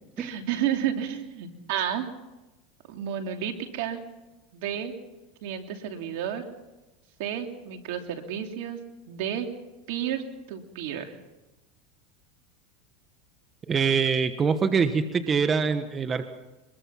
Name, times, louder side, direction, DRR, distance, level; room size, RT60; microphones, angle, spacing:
voice 1, 0.2-2.1 2.9-4.0 4.5-4.9 5.4-6.5 7.2-8.8 9.1-9.5 9.9-10.2 10.5-11.1, right 9 dB, 70° right, 4 dB, 3.0 m, -31 dB
voice 2, 13.7-16.3, right 5 dB, 25° right, 9 dB, 1.4 m, -24 dB
24.0 x 22.0 x 5.9 m, 1.1 s
supercardioid pair, 110°, 0 cm